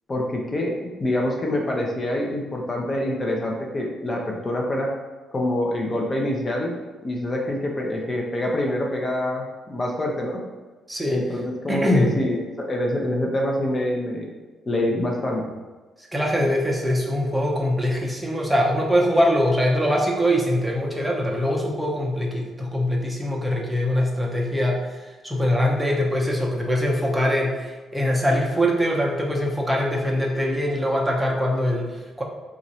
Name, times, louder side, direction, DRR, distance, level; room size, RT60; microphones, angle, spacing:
voice 1, 0.1-4.9 5.3-6.8 7.0-10.4 11.1-14.3 14.7-15.4, left 1 dB, 30° left, -1 dB, 0.6 m, -26 dB
voice 2, 10.9-11.2 11.7-12.1 16.0-32.2, equal, 10° right, -2 dB, 0.7 m, -23 dB
3.0 x 2.5 x 4.1 m, 1.2 s
cardioid pair, 90°, 0 cm